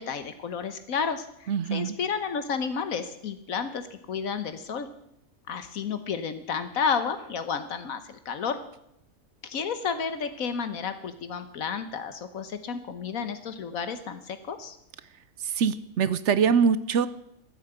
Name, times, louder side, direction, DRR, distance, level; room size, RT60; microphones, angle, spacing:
voice 1, 0.0-4.9 5.5-8.6 9.4-14.8, left 6 dB, 75° left, 10 dB, 1.4 m, -31 dB
voice 2, 1.5-1.9 15.4-17.1, right 6 dB, 60° right, 15 dB, 0.9 m, -23 dB
14.5 x 8.6 x 8.0 m, 0.77 s
omnidirectional pair, 1.5 m